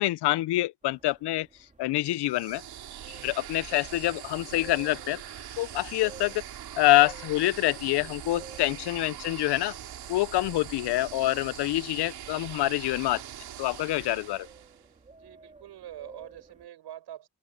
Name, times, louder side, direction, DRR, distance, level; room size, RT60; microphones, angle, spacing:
voice 1, 0.0-1.5 1.8-2.6 3.1-5.2 5.6-6.3 6.8-9.7 10.1-13.2 13.6-14.5, left 17 dB, 80° left, 0.6 m, -26 dB
sound 1, 0.8-16.7, right 4 dB, 20° right, 2.2 m, -54 dB
sound 2, 2.2-14.9, right 11 dB, 75° right, 2.8 m, -42 dB
voice 2, 15.1-17.3, right 12 dB, 90° right, 7.4 m, -47 dB
open air
wide cardioid pair, 165°, 39 cm